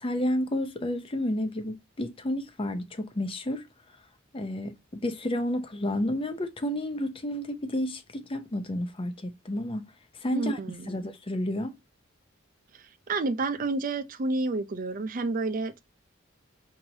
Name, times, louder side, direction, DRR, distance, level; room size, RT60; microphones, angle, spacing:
voice 1, 0.0-3.6 4.3-9.9 10.2-10.6 10.9-11.8, left 1 dB, 25° left, 0.6 m, -31 dB
voice 2, 10.3-10.9 13.1-15.8, right 3 dB, 45° right, 0.5 m, -29 dB
4.7 x 2.8 x 2.7 m
head